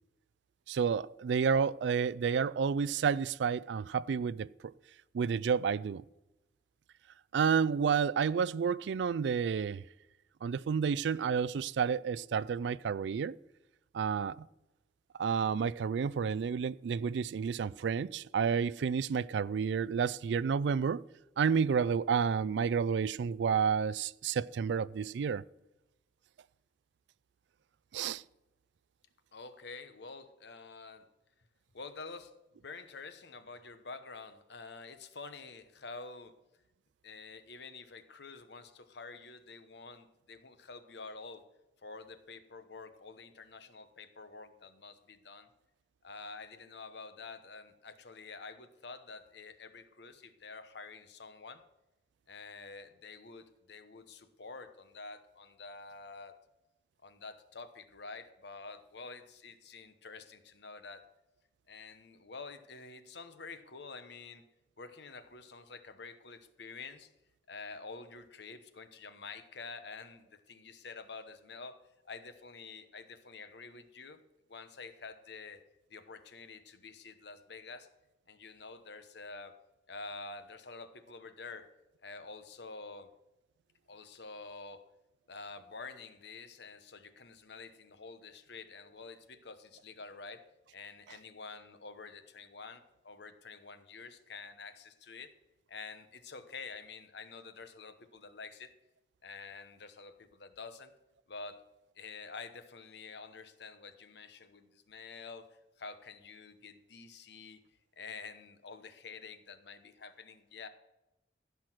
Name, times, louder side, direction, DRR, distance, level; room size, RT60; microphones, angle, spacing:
voice 1, 0.7-4.7 5.1-6.0 7.3-9.8 10.4-13.4 13.9-14.5 15.2-21.0 21.4-25.4 27.9-28.2, right 6 dB, 65° right, 0.3 m, -30 dB
voice 2, 29.3-31.1 31.7-32.3 32.6-36.4 37.0-41.5 41.8-45.5 46.0-51.6 52.3-56.3 57.0-61.1 61.7-64.4 64.8-67.1 67.5-74.2 74.5-75.6 75.9-77.9 78.3-79.6 79.9-81.7 82.0-83.1 83.9-84.8 85.3-90.5 90.7-95.3 95.7-98.7 99.2-100.9 101.3-101.6 102.0-107.6 108.0-110.7, left 4 dB, 65° left, 1.0 m, -48 dB
15.0 x 6.0 x 6.1 m
head